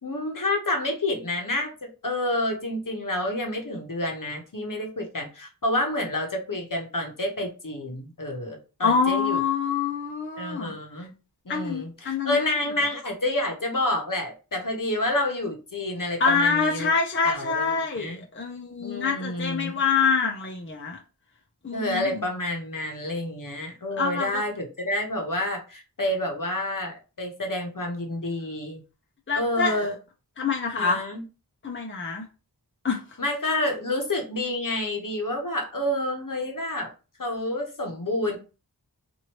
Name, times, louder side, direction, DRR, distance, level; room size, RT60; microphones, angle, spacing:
voice 1, 0.0-9.4 10.4-11.1 11.4-16.9 17.2-18.2 18.8-19.8 21.7-28.8 29.4-29.9 30.8-31.2 33.2-36.9 37.2-38.4, left 1 dB, 55° left, 2 dB, 0.9 m, -29 dB
voice 2, 8.8-10.7 11.0-11.1 11.5-12.5 16.2-21.0 21.6-22.2 24.0-24.4 29.3-29.9 30.4-31.0 31.6-32.2 32.8-33.0, left 5 dB, 30° left, 0 dB, 0.6 m, -26 dB
3.0 x 2.6 x 2.9 m, 0.33 s
wide cardioid pair, 45°, 40 cm